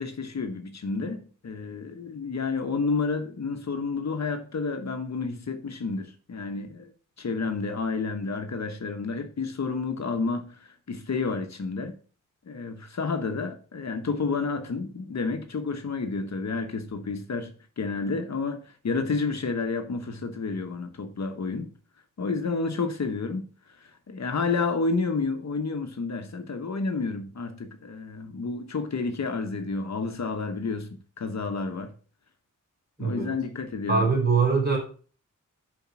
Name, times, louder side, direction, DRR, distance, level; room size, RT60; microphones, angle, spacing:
voice 1, 0.0-6.9 7.2-11.9 12.5-21.7 22.2-23.5 24.1-31.9 33.0-34.1, left 4 dB, 55° left, 1.0 m, -30 dB
voice 2, 33.0-33.3 33.9-34.8, right 4 dB, 30° right, 3.7 m, -23 dB
7.2 x 5.3 x 5.9 m
wide cardioid pair, 135°, 32 cm